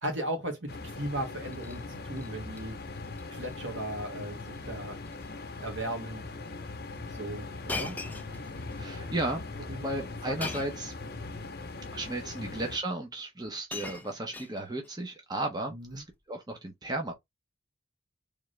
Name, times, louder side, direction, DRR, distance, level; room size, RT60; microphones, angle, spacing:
voice 1, 0.0-2.8 3.3-5.0 5.6-6.2 7.1-8.0 9.7-9.9 10.3-10.4 12.4-12.6 15.7-16.0, right 1 dB, 80° right, 2.0 m, -36 dB
sound 1, 0.7-12.8, left 3 dB, 55° left, 0.8 m, -40 dB
Shatter, 1.4-1.8 2.2-2.6 3.0-3.2 3.5-3.6 4.5-4.7 5.0-5.3 6.0-6.1 7.7-8.8 10.4-10.9 11.9-12.0 13.0-13.1 13.4-14.9 15.9-16.1, left 3 dB, 10° left, 0.4 m, -40 dB
voice 2, 8.8-9.4 9.8-11.0 11.9-17.1, right 2 dB, 20° right, 1.0 m, -34 dB
3.7 x 3.6 x 3.3 m
head